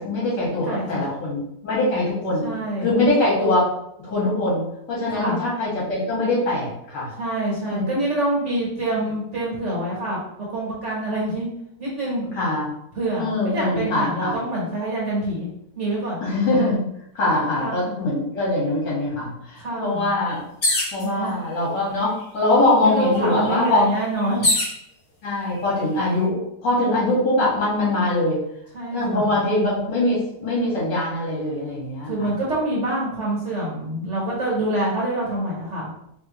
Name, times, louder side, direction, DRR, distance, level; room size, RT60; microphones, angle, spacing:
voice 1, 0.0-2.5 2.8-3.6 4.0-4.6 4.9-7.1 7.6-7.9 12.4-12.6 13.2-14.4 16.2-16.9 17.2-20.4 20.9-23.8 25.2-28.4 28.9-32.3, left 2 dB, 75° left, -6 dB, 2.5 m, -22 dB
voice 2, 0.5-1.1 2.4-3.0 5.1-5.4 7.2-11.5 11.8-12.3 12.9-15.5 15.8-16.2 17.2-18.0 19.6-20.1 21.0-21.3 22.8-24.5 28.7-29.4 32.0-35.9, right 1 dB, 45° right, -5 dB, 1.7 m, -26 dB
sound 1, 20.6-21.0 22.0-22.1 22.4-24.8 25.5-26.0, left 2 dB, 35° left, 1.2 m, -24 dB
4.8 x 3.0 x 3.2 m, 0.78 s
omnidirectional pair, 1.9 m